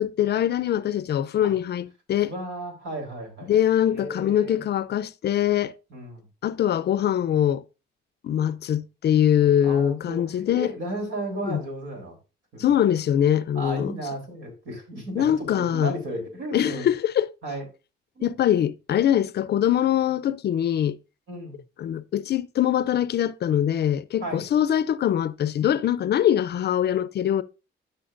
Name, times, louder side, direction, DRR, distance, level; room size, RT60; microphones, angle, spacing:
voice 1, 0.0-2.3 3.5-5.7 6.4-7.6 8.2-10.7 11.4-11.6 12.6-13.9 15.2-15.9 16.5-17.3 18.2-21.0 21.8-27.4, left 10 dB, 55° left, 0.5 m, -23 dB
voice 2, 2.3-3.5 3.9-4.6 5.9-6.2 9.6-12.2 12.5-12.8 13.5-16.9 17.4-17.6 18.2-18.4 21.3-21.6 24.2-24.5, right 1 dB, 70° right, 3.6 m, -34 dB
12.5 x 5.6 x 2.5 m
cardioid pair, 90°, 20 cm